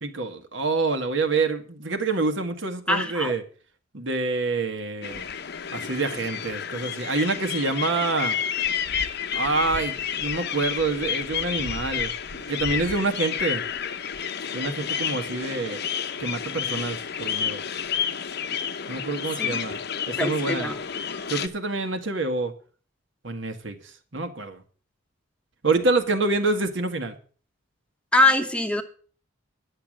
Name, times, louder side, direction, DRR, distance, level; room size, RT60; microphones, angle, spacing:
voice 1, 0.0-3.4 3.9-5.2 5.7-8.4 9.3-13.6 14.5-15.8 16.2-17.6 18.9-19.8 20.1-20.7 21.3-22.5 23.2-23.7 24.1-24.6 25.6-27.2, right 3 dB, 70° right, 7 dB, 1.6 m, -27 dB
voice 2, 2.9-3.3 19.4-19.6 20.2-20.8 28.1-28.8, left 2 dB, 5° left, 6 dB, 1.0 m, -22 dB
sound 1, 5.0-21.5, left 8 dB, 60° left, 0.8 m, -30 dB
10.5 x 6.9 x 7.5 m, 0.42 s
head